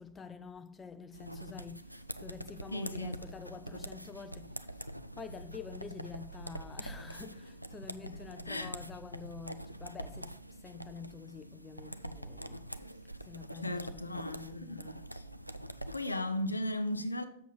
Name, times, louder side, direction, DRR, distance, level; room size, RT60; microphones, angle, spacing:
voice 1, 0.0-4.6 5.2-12.7 13.3-15.0, left 5 dB, 15° left, 0.5 m, -48 dB
sound 1, 1.1-16.0, right 1 dB, 90° right, 0.3 m, -45 dB
voice 2, 2.7-3.2 8.5-8.7 13.6-15.2 15.9-17.2, left 1 dB, 85° left, 0.5 m, -36 dB
7.2 x 6.5 x 4.2 m
figure-of-eight pair, 90°, 0 cm